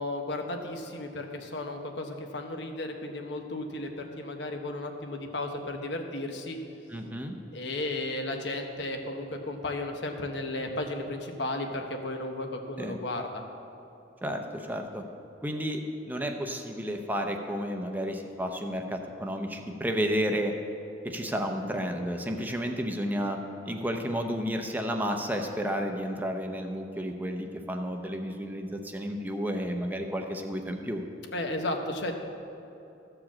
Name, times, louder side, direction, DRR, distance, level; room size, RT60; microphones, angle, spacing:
voice 1, 0.0-3.9 4.2-6.6 7.5-13.4 31.3-32.1, left 2 dB, 70° left, 4 dB, 1.1 m, -34 dB
voice 2, 6.9-7.4 12.8-13.0 14.2-15.0 15.4-20.5 21.0-23.4 23.7-31.0, equal, 10° right, 3 dB, 0.7 m, -32 dB
14.0 x 4.9 x 7.4 m, 3.0 s
head